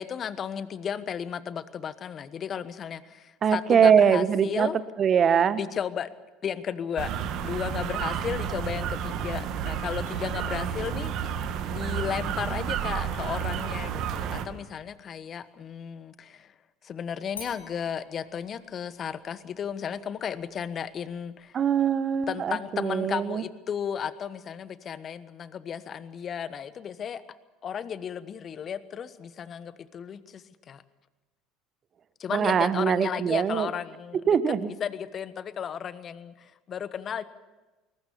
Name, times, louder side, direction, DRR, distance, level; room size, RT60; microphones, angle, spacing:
voice 1, 0.0-4.8 5.6-6.1 6.4-7.1 7.4-11.3 11.7-16.5 16.8-21.6 22.3-27.2 27.6-30.8 32.2-34.2 34.6-37.2, left 8 dB, 40° left, 15 dB, 1.2 m, -34 dB
voice 2, 3.4-4.7 5.0-5.6 21.5-23.4 32.3-33.7 34.3-34.7, right 7 dB, 40° right, 15 dB, 1.1 m, -22 dB
sound 1, 7.0-14.4, right 8 dB, 55° right, 1.8 m, -31 dB
sound 2, 10.1-15.7 17.3-22.3, left 4 dB, 85° left, 4.1 m, -53 dB
22.0 x 20.0 x 7.2 m, 1.1 s
hypercardioid pair, 70°, 0 cm